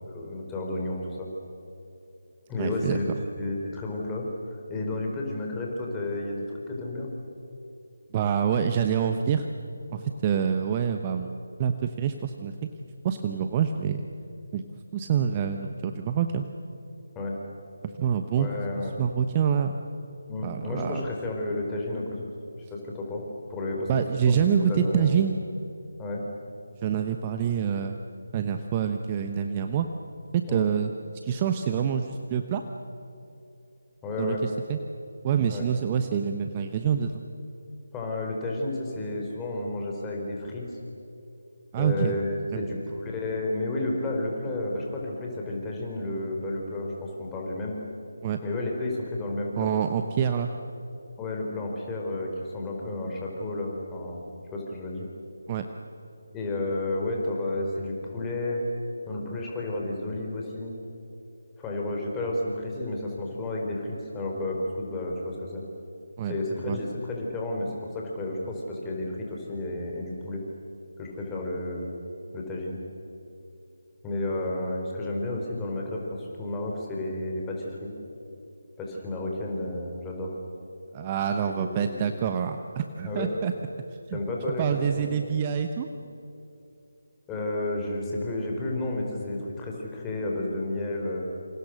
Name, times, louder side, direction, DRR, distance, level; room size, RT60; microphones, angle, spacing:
voice 1, 0.1-1.3 2.5-3.0 3.4-4.2 4.5-7.1 17.1-17.3 18.4-19.0 20.3-22.2 22.7-23.2 23.5-23.9 24.3-25.2 26.0-26.2 30.5-30.7 34.0-34.4 35.5-35.6 37.9-40.7 41.7-47.7 48.4-49.7 51.2-54.2 54.5-55.1 56.3-58.7 59.1-60.7 61.6-65.6 66.2-70.4 71.0-71.9 72.3-72.8 74.0-77.9 78.8-80.3 81.5-82.0 83.0-83.3 84.1-84.7 84.9-85.4 87.3-91.3, left 2 dB, 10° left, -1 dB, 4.5 m, -31 dB
voice 2, 2.6-3.0 8.1-9.5 9.9-12.5 13.0-14.1 14.5-14.6 14.9-16.4 18.0-18.5 18.8-19.8 20.4-21.1 23.9-25.4 26.8-28.0 28.3-29.9 30.3-30.9 31.2-32.6 34.2-34.8 35.2-37.2 41.7-42.2 42.5-42.7 48.2-48.4 49.6-50.5 55.5-55.6 66.2-66.3 66.7-66.8 80.9-83.5 84.1-84.2 84.6-85.9, right 8 dB, 25° right, 6 dB, 1.0 m, -26 dB
28.0 x 27.0 x 6.5 m, 2.8 s
figure-of-eight pair, 155°, 0 cm